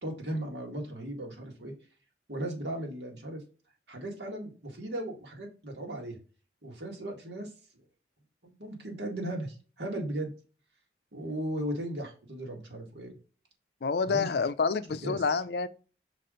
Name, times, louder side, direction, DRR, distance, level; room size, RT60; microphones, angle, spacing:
voice 1, 0.0-1.7 2.3-3.4 3.9-6.2 6.6-7.5 8.4-10.3 11.1-13.1 14.0-14.3 15.0-15.2, right 1 dB, 80° right, 1.9 m, -36 dB
voice 2, 13.8-15.7, left 4 dB, 65° left, 0.5 m, -28 dB
6.0 x 4.2 x 3.8 m
head